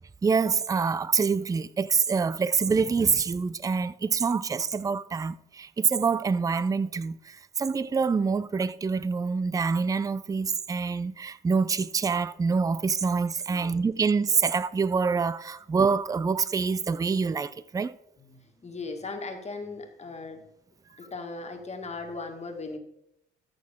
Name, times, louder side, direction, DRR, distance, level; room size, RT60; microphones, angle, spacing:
voice 1, 0.2-17.9, right 5 dB, 15° right, 0.4 m, -26 dB
voice 2, 18.2-20.4 21.0-22.8, left 3 dB, 35° left, 1.8 m, -38 dB
13.5 x 6.3 x 3.7 m
cardioid pair, 90°, 20 cm